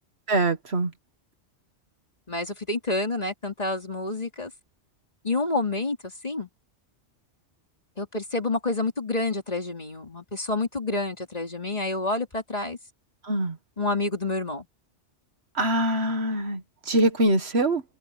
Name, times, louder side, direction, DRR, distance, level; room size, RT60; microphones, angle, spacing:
voice 1, 0.3-0.9 13.3-13.6 15.6-16.6 16.9-17.8, right 1 dB, 65° right, 1.9 m, -23 dB
voice 2, 2.3-4.5 5.2-6.0 6.2-6.5 8.0-12.8 13.8-14.6, left 2 dB, 35° left, 3.0 m, -28 dB
omnidirectional pair, 1.2 m